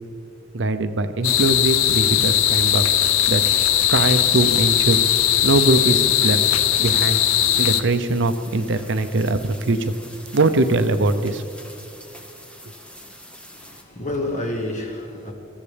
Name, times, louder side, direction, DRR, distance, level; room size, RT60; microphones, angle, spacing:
voice 1, 0.5-2.8 3.3-3.4 3.9-5.0 5.4-6.4 6.8-7.2 7.6-11.4, right 2 dB, 60° right, 10 dB, 0.6 m, -21 dB
sound 1, 1.2-7.8, left 11 dB, 85° left, 0.6 m, -19 dB
sound 2, 2.4-13.8, equal, 5° left, 1.0 m, -43 dB
voice 2, 13.5-15.3, left 1 dB, 40° left, 2 dB, 1.8 m, -29 dB
22.0 x 14.5 x 3.4 m, 2.6 s
head